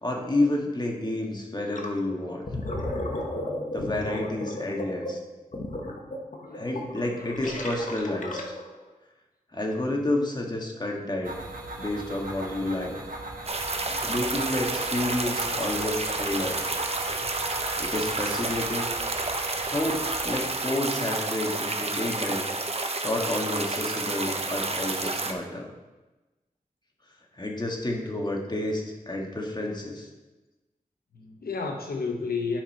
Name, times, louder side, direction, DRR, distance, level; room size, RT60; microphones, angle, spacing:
voice 1, 0.0-2.4 3.7-5.2 6.5-8.4 9.5-11.3 11.8-12.9 14.0-16.6 17.8-19.0 19.7-22.5 23.0-25.7 27.4-30.1, left 1 dB, 30° left, 0 dB, 1.6 m, -30 dB
Gurgling, 1.7-2.0 2.3-8.8, left 1 dB, 55° left, 1.2 m, -34 dB
voice 2, 6.4-6.8 13.8-14.1 31.1-32.6, left 4 dB, 85° left, 3 dB, 0.9 m, -32 dB
sound 1, 11.2-20.4, right 1 dB, 65° right, 1.4 m, -37 dB
sound 2, 13.4-25.3, right 3 dB, 40° right, 0.9 m, -30 dB
10.5 x 5.4 x 4.3 m, 1.1 s
wide cardioid pair, 70°, 15 cm